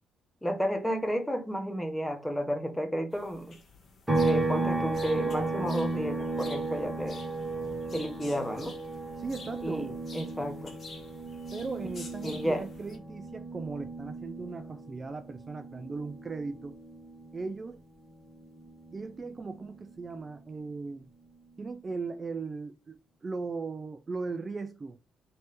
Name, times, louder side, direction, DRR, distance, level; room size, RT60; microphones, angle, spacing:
voice 1, 0.4-3.6 4.2-7.2 7.9-8.7 9.6-9.9 10.1-10.7 12.2-12.6, equal, 5° left, 1.0 m, -32 dB
sound 1, 3.1-13.0, left 3 dB, 45° left, 1.2 m, -50 dB
sound 2, 4.1-17.6 18.0-20.2, right 2 dB, 15° right, 2.0 m, -35 dB
voice 2, 9.2-10.0 11.5-16.8 17.3-17.8 18.9-21.1 21.6-25.0, right 4 dB, 30° right, 0.4 m, -38 dB
4.1 x 3.4 x 3.3 m
cardioid pair, 90°, 0 cm